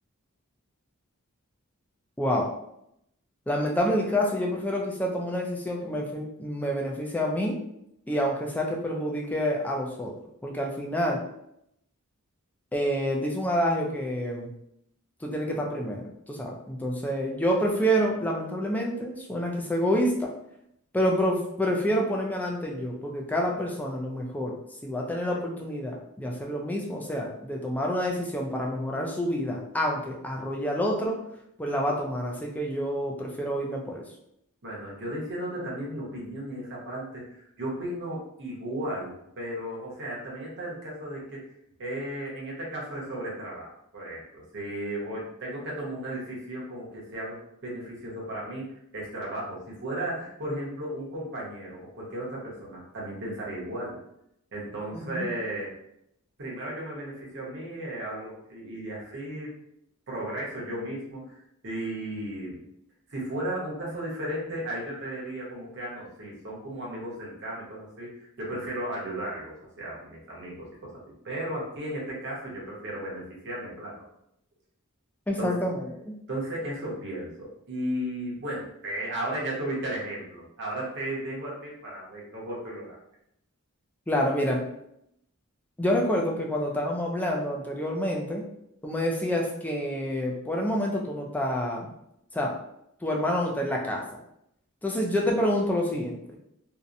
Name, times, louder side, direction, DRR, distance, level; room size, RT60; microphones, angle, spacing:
voice 1, 2.2-2.5 3.5-7.6 8.1-10.2 10.4-11.2 12.7-14.5 15.2-20.3 20.9-31.2 31.6-34.0 54.9-55.3 75.3-76.2 84.1-84.6 85.8-88.5 88.8-91.9 92.3-92.5 93.0-94.0 94.8-96.2, equal, 5° left, -1 dB, 0.3 m, -28 dB
voice 2, 34.6-41.4 41.8-54.0 54.5-55.7 56.4-59.5 60.1-62.6 63.1-70.9 71.2-74.0 75.4-75.6 76.3-83.0, right 1 dB, 55° right, -4 dB, 0.9 m, -35 dB
2.7 x 2.1 x 2.4 m, 0.77 s
head